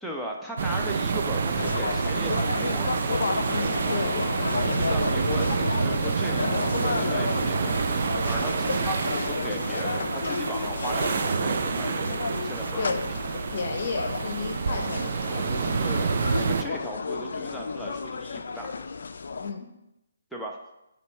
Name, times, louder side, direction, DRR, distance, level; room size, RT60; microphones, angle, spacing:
voice 1, 0.0-3.1 4.6-12.9 15.8-18.7 20.3-20.6, equal, ahead, -3 dB, 0.7 m, -37 dB
sound 1, 0.6-16.6, right 5 dB, 55° right, 0.5 m, -28 dB
sound 2, 1.6-19.5, left 4 dB, 65° left, 0.4 m, -32 dB
voice 2, 3.5-4.2 9.0-9.1 12.8-15.9 19.4-19.7, left 4 dB, 50° left, 4 dB, 0.8 m, -33 dB
6.9 x 3.1 x 4.3 m, 0.89 s
hypercardioid pair, 150°, 0 cm